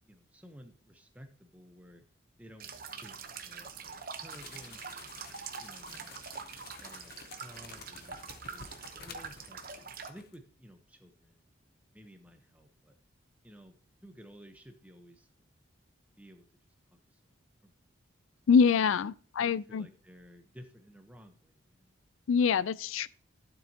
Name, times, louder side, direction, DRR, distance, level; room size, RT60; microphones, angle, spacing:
voice 1, 0.0-2.0 2.4-2.7 3.0-5.1 5.6-6.2 6.8-7.1 7.4-8.2 8.5-9.6 10.1-11.4 11.9-12.9 13.4-13.7 14.0-15.3 16.2-16.4 17.6-17.7 19.4-22.0, equal, 5° right, 0.9 m, -54 dB
sound 1, 2.6-10.1, right 5 dB, 45° right, 0.8 m, -44 dB
sound 2, 4.3-9.9 10.2-10.4, left 5 dB, 50° left, 0.8 m, -51 dB
voice 2, 18.5-19.9 22.3-23.1, left 6 dB, 75° left, 0.4 m, -25 dB
12.0 x 7.6 x 2.8 m
head